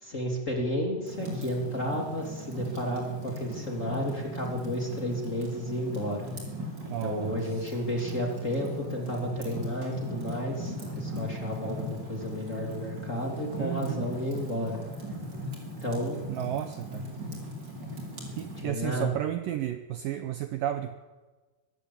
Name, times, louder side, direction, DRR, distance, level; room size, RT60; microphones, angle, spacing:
voice 1, 0.0-6.3 7.0-14.8 15.8-16.2 18.6-19.1, equal, 20° left, 0 dB, 2.7 m, -32 dB
Fire, 1.0-18.6, equal, 25° right, 5.0 m, -39 dB
voice 2, 6.9-7.6 13.6-14.1 16.3-17.1 18.4-20.9, right 12 dB, 75° right, 9 dB, 2.2 m, -32 dB
23.0 x 14.0 x 8.6 m, 1.3 s
omnidirectional pair, 4.8 m